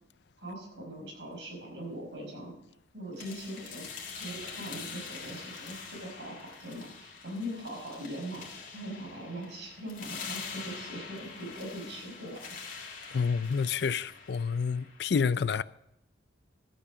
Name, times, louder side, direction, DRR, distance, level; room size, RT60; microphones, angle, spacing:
voice 1, 0.4-2.5 2.9-3.9 4.1-12.4, equal, 75° right, 5.1 m, -41 dB
sound 1, 3.2-15.1, left 5 dB, 45° left, 2.6 m, -44 dB
voice 2, 13.1-15.6, left 5 dB, 65° left, 0.4 m, -28 dB
13.0 x 8.6 x 4.9 m
head